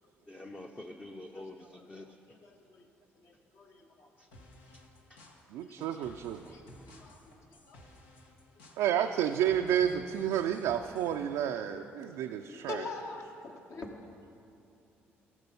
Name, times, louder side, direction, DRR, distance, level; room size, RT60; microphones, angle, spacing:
voice 1, 0.3-2.1 4.2-4.3 5.1-5.2, left 1 dB, 20° left, 2 dB, 0.7 m, -46 dB
voice 2, 1.3-2.9 3.1-4.2 5.6-7.9 11.7-11.8 12.4-13.9, left 3 dB, 60° left, 2 dB, 1.4 m, -46 dB
sound 1, 4.3-11.2, left 1 dB, 90° left, 1.1 m, -56 dB
voice 3, 5.5-6.5 8.8-12.8, right 10 dB, 75° right, 4 dB, 0.4 m, -30 dB
14.5 x 6.0 x 5.4 m, 2.7 s
hypercardioid pair, 55°, 5 cm